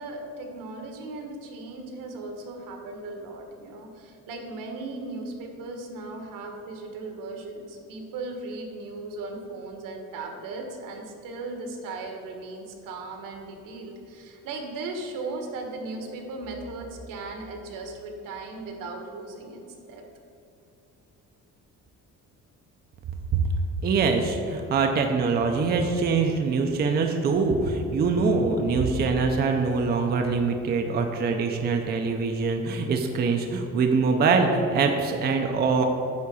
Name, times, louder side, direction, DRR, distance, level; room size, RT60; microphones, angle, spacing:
voice 1, 0.0-20.0, right 3 dB, 80° right, 3 dB, 1.5 m, -37 dB
voice 2, 23.8-35.9, right 4 dB, 30° right, 4 dB, 0.5 m, -24 dB
9.5 x 3.8 x 7.0 m, 2.7 s
cardioid pair, 175°, 32 cm